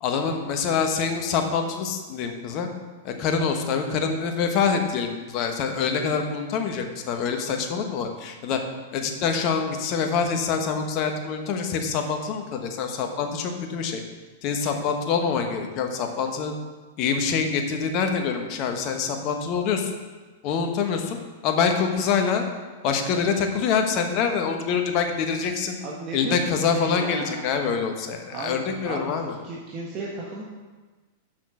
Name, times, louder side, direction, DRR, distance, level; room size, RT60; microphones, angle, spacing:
voice 1, 0.0-2.7 3.0-8.6 8.9-14.0 14.4-16.5 17.0-19.9 20.4-21.2 21.4-22.4 22.8-25.8 26.1-29.4, left 6 dB, 45° left, 5 dB, 1.2 m, -25 dB
voice 2, 25.8-27.4 28.3-29.1 29.4-30.4, right 3 dB, 35° right, -3 dB, 1.4 m, -34 dB
6.5 x 6.2 x 6.2 m, 1.3 s
hypercardioid pair, 100°, 0 cm